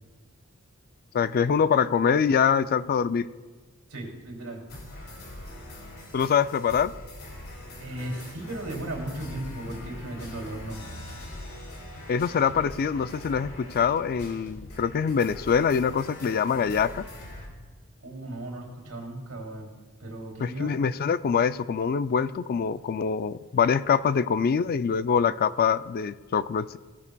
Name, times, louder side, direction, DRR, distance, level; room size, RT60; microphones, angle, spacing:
voice 1, 1.1-3.3 6.1-6.9 12.1-17.0 20.4-26.8, left 6 dB, 45° left, 14 dB, 0.3 m, -24 dB
voice 2, 3.9-4.6 7.8-10.8 18.0-19.7 20.0-20.8, right 1 dB, 85° right, 1 dB, 2.7 m, -36 dB
sound 1, 4.7-17.5, left 1 dB, 70° left, 3.0 m, -42 dB
17.0 x 12.0 x 2.3 m, 1.3 s
head